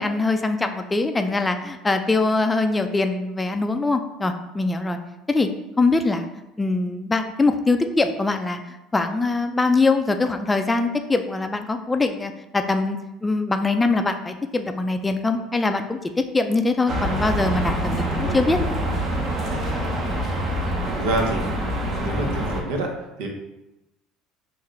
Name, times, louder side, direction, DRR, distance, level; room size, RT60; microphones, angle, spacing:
voice 1, 0.0-5.0 5.3-5.5 5.8-6.3 6.6-16.0 16.3-18.6, left 3 dB, 15° left, 7 dB, 0.4 m, -23 dB
sound 1, 16.9-22.6, right 1 dB, 40° right, 0.9 m, -25 dB
voice 2, 20.9-21.5 22.0-22.9 23.2-23.3, right 2 dB, 75° right, 1 dB, 0.7 m, -26 dB
3.7 x 2.6 x 3.2 m, 0.95 s
hypercardioid pair, 75°, 0 cm